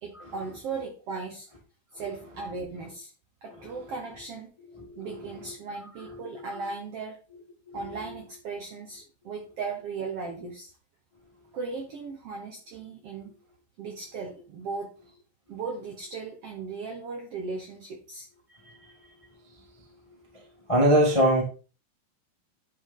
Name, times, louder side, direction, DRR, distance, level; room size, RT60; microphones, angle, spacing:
voice 1, 0.0-1.5 1.9-3.1 3.4-4.5 5.0-7.2 7.7-10.7 11.5-13.3 13.8-14.9 15.5-18.3, right 4 dB, 70° right, 1 dB, 1.5 m, -37 dB
voice 2, 4.7-5.4 6.0-6.2 7.7-7.9 18.6-19.1 20.3-21.4, equal, 20° left, -2 dB, 0.7 m, -25 dB
10.0 x 3.8 x 3.6 m, 0.36 s
omnidirectional pair, 3.9 m